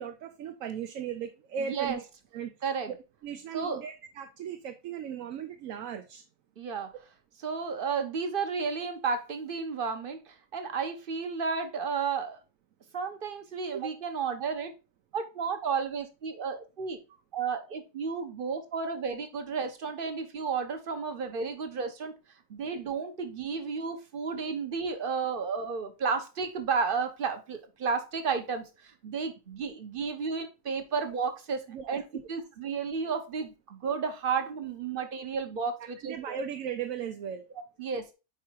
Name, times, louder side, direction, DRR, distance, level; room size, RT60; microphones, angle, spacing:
voice 1, 0.0-2.1 2.3-2.5 2.9-3.0 3.2-6.2 13.7-13.9 31.7-32.2 35.8-37.5, right 8 dB, 80° right, 1.1 m, -37 dB
voice 2, 1.6-2.0 2.6-2.9 3.5-3.8 6.6-6.9 7.4-12.4 12.9-14.7 15.1-17.0 17.3-22.1 22.5-32.0 32.3-36.4 37.8-38.1, right 5 dB, 45° right, 1.0 m, -32 dB
4.8 x 4.8 x 4.5 m
omnidirectional pair, 1.4 m